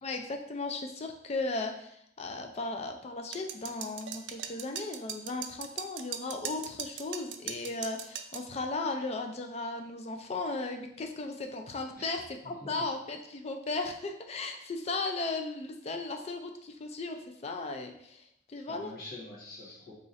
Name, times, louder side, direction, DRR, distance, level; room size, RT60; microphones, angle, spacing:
voice 1, 0.0-19.0, left 3 dB, 35° left, 4 dB, 0.4 m, -36 dB
sound 1, 3.3-8.5, right 9 dB, 80° right, 0.3 m, -39 dB
voice 2, 12.0-12.7 18.7-19.9, left 2 dB, 55° left, -6 dB, 1.2 m, -46 dB
2.9 x 2.5 x 4.0 m, 0.74 s
head